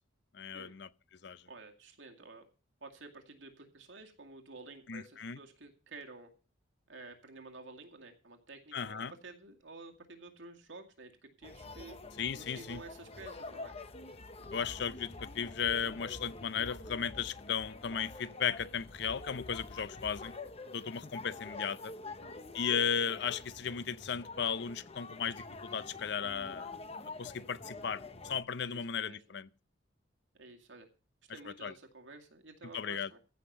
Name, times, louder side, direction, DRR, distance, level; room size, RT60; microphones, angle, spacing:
voice 1, 0.3-0.9 1.2-1.4 4.9-5.4 8.7-9.1 12.2-12.8 14.5-20.3 20.7-21.9 22.5-26.7 27.2-29.5 31.6-31.7 32.7-33.1, left 7 dB, 60° left, 0.6 m, -35 dB
voice 2, 1.5-2.4 2.8-6.3 6.9-12.0 12.4-13.8 22.1-22.4 28.6-29.2 30.3-30.9 31.3-33.2, right 3 dB, 75° right, 2.2 m, -51 dB
sound 1, 11.4-28.4, left 3 dB, 30° left, 1.0 m, -47 dB
15.0 x 5.8 x 6.8 m
head